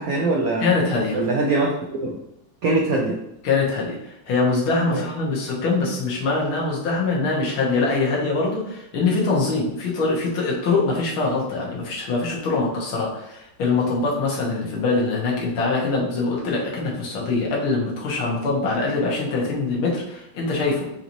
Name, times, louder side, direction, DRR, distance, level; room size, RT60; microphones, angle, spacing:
voice 1, 0.0-0.7 1.1-2.2 2.6-3.2 4.9-5.0, right 2 dB, 75° right, 0 dB, 0.8 m, -22 dB
voice 2, 0.6-1.2 3.4-21.0, left 3 dB, 90° left, -4 dB, 2.0 m, -23 dB
6.7 x 2.9 x 2.7 m, 0.84 s
omnidirectional pair, 2.2 m